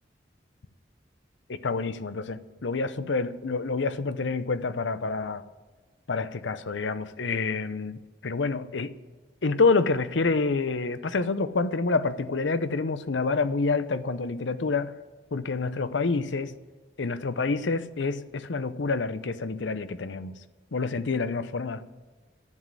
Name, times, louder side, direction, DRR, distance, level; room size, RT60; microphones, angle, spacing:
voice 1, 1.5-5.4 6.1-8.9 9.4-14.9 15.3-16.5 17.0-20.3 20.7-21.8, left 4 dB, 80° left, 0.7 m, -27 dB
11.0 x 7.5 x 9.6 m
head